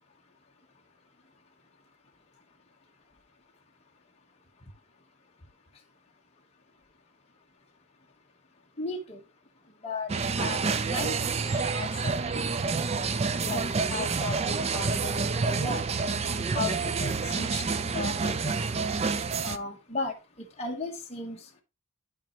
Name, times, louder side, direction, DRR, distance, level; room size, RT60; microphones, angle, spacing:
voice 1, 8.8-9.2 9.8-10.1 10.3-12.2 13.4-15.9 16.5-18.6 19.4-21.6, left 3 dB, 30° left, -1 dB, 1.2 m, -36 dB
sound 1, 10.1-19.6, right 4 dB, 30° right, 0.3 m, -28 dB
12.0 x 4.3 x 3.0 m, 0.26 s
head